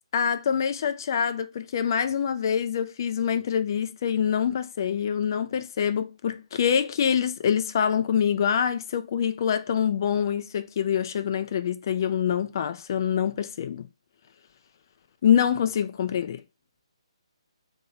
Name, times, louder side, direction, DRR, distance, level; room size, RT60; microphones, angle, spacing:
voice 1, 0.1-13.9 15.2-16.4, left 8 dB, 40° left, 0.3 m, -25 dB
2.6 x 2.6 x 4.0 m
figure-of-eight pair, 140°, 3 cm